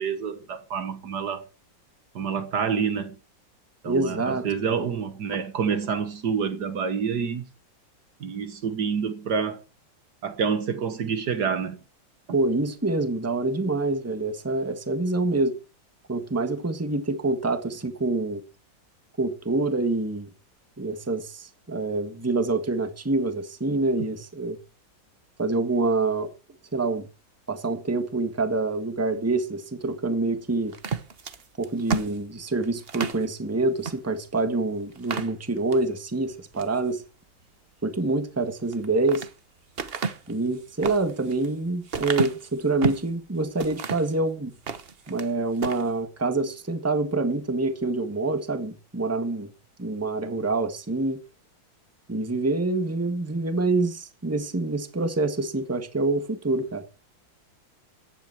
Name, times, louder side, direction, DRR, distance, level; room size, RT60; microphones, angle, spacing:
voice 1, 0.0-1.4 2.2-3.2 3.8-7.5 8.2-9.6 10.2-11.8, right 6 dB, 60° right, 1.8 m, -28 dB
voice 2, 3.8-4.4 12.3-15.6 16.1-18.4 19.2-20.3 20.8-24.6 25.4-26.3 26.7-27.1 27.5-30.7 31.6-37.0 37.8-39.3 40.3-44.5 45.1-49.5 49.8-51.2 52.1-56.8, right 2 dB, 10° right, 1.5 m, -26 dB
sound 1, 30.7-33.2 33.8-34.0 34.4-34.5 34.9-35.9 36.3-36.8 38.6-39.3 39.8-43.1 43.6-44.1 44.5-45.3 45.6-45.9, right 5 dB, 40° right, 1.0 m, -31 dB
15.0 x 10.5 x 4.7 m
omnidirectional pair, 2.1 m